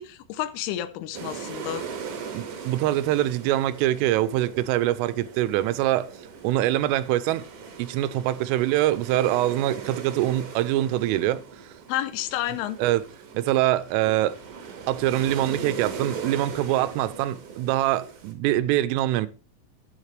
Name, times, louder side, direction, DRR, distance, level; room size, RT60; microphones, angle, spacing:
voice 1, 0.0-1.8 11.9-12.8, left 13 dB, 80° left, 3.2 m, -30 dB
sound 1, 1.1-18.3, right 6 dB, 60° right, 2.3 m, -39 dB
voice 2, 2.3-6.1 6.4-7.4 7.8-11.4 12.8-13.0 13.3-14.3 14.9-19.3, right 14 dB, 90° right, 3.3 m, -24 dB
12.5 x 9.5 x 3.3 m
omnidirectional pair, 5.6 m